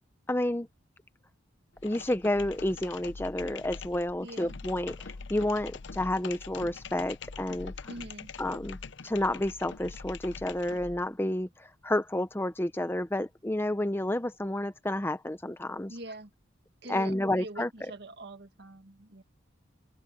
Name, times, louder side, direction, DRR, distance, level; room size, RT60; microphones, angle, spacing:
voice 1, 0.3-0.7 1.8-7.7 8.4-8.8 9.0-16.0 16.9-17.9, left 1 dB, 10° left, 0.7 m, -30 dB
sound 1, 1.7-11.1, left 4 dB, 65° left, 0.7 m, -43 dB
voice 2, 4.2-4.6 7.9-8.3 15.9-16.3 16.8-19.2, right 1 dB, 55° right, 2.0 m, -44 dB
head